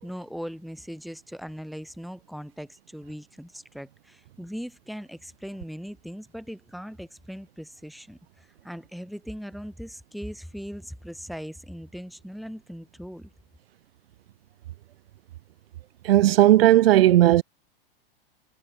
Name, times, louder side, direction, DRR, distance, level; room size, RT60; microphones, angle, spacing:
voice 1, 0.0-13.3, equal, ahead, 3.5 m, -39 dB
voice 2, 16.1-17.4, right 14 dB, 85° right, 0.5 m, -16 dB
hypercardioid pair, 120°, 29 cm